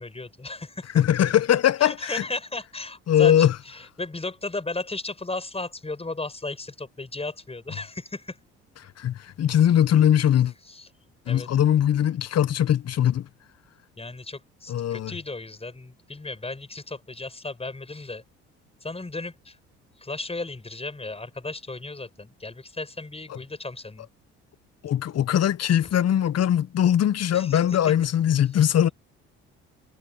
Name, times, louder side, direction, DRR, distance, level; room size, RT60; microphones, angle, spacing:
voice 1, 0.0-1.0 1.8-8.4 10.7-10.9 11.3-11.5 14.0-18.2 18.8-19.6 20.0-24.1 27.3-27.6, left 3 dB, 20° left, 7.4 m, -35 dB
voice 2, 0.9-2.2 3.1-3.5 9.0-10.5 11.3-13.3 14.7-15.1 24.8-28.9, left 10 dB, 50° left, 1.3 m, -21 dB
hypercardioid pair, 60°, 32 cm